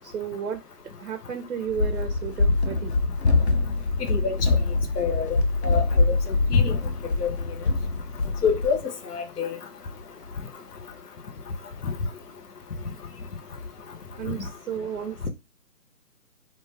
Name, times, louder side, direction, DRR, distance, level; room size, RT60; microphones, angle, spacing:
voice 1, 0.0-0.6 1.0-2.9 14.1-15.3, right 7 dB, 65° right, 0.7 m, -33 dB
Run, 1.7-8.7, left 3 dB, 45° left, 0.5 m, -24 dB
voice 2, 5.0-5.4 5.6-6.2 6.5-6.8 7.2-7.3 8.4-8.8 9.1-9.6, left 6 dB, 80° left, 0.8 m, -25 dB
2.4 x 2.2 x 3.2 m
figure-of-eight pair, 160°, 46 cm